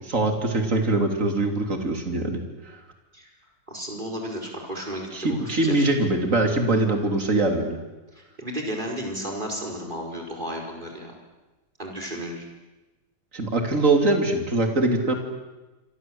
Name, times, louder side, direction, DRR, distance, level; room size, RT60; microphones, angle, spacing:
voice 1, 0.0-2.8 5.1-7.8 13.3-15.1, right 2 dB, 40° right, 4 dB, 3.6 m, -23 dB
voice 2, 3.7-5.9 8.4-11.1 11.8-12.5, equal, 25° right, 0 dB, 5.2 m, -33 dB
27.0 x 25.0 x 8.0 m, 1.1 s
omnidirectional pair, 2.1 m